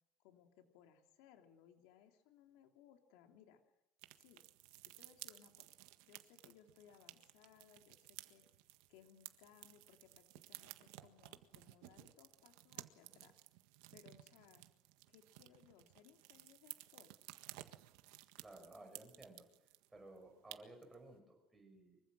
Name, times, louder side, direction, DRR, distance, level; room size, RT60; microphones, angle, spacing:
voice 1, 0.2-3.6 4.2-4.4 4.9-5.8 6.1-8.4 8.9-13.4 13.9-14.6 15.1-17.2, left 9 dB, 70° left, 5 dB, 3.0 m, -65 dB
sound 1, 4.0-19.9 20.2-20.3 20.5-20.9, right 18 dB, 75° right, 1.6 m, -56 dB
voice 2, 18.4-19.5 19.9-22.0, right 2 dB, 5° right, 3 dB, 5.9 m, -57 dB
25.0 x 24.0 x 6.3 m, 0.90 s
cardioid pair, 175°, 0 cm